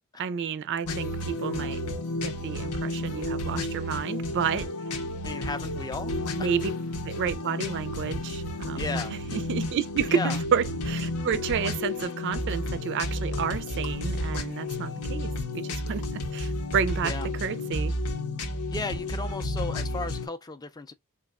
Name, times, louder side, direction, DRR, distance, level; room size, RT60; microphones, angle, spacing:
voice 1, 0.2-1.8 2.2-4.7 6.4-6.7 7.0-17.9, right 7 dB, 55° right, 0.3 m, -30 dB
sound 1, 0.9-20.3, left 1 dB, 85° left, 0.8 m, -32 dB
voice 2, 5.2-6.1 8.8-9.2 10.1-10.4 17.0-17.3 18.7-20.9, left 3 dB, 15° left, 0.4 m, -34 dB
4.1 x 2.4 x 2.4 m
head